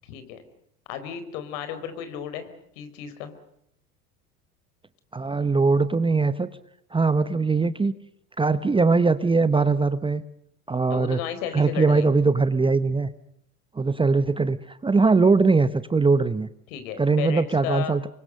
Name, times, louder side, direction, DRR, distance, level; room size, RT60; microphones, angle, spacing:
voice 1, 0.0-0.4 0.9-2.5 2.7-3.3 10.9-12.1 16.7-17.9, left 9 dB, 60° left, 10 dB, 4.8 m, -33 dB
voice 2, 5.1-6.5 6.9-7.9 8.4-10.2 10.7-11.2 11.5-13.1 13.7-16.5 17.0-18.0, right 4 dB, 10° right, 13 dB, 1.0 m, -21 dB
28.5 x 24.0 x 6.6 m, 0.76 s
hypercardioid pair, 85°, 45 cm